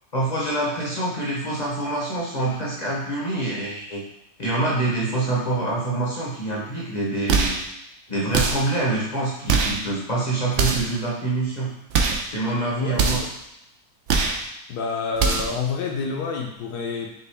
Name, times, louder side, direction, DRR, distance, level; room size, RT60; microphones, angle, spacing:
voice 1, 0.1-4.0 4.4-7.5 8.1-11.7 12.2-13.2, right 2 dB, 40° left, -5 dB, 0.6 m, -25 dB
sound 1, 7.3-7.7 8.3-8.7 9.5-9.8 10.5-11.0 11.9-12.3 13.0-13.4 14.1-14.5 15.2-15.6, right 5 dB, 75° right, 0.6 m, -22 dB
voice 2, 12.7-13.1 14.7-17.1, left 5 dB, 75° left, 0 dB, 1.1 m, -28 dB
5.7 x 2.3 x 3.4 m, 0.86 s
omnidirectional pair, 1.8 m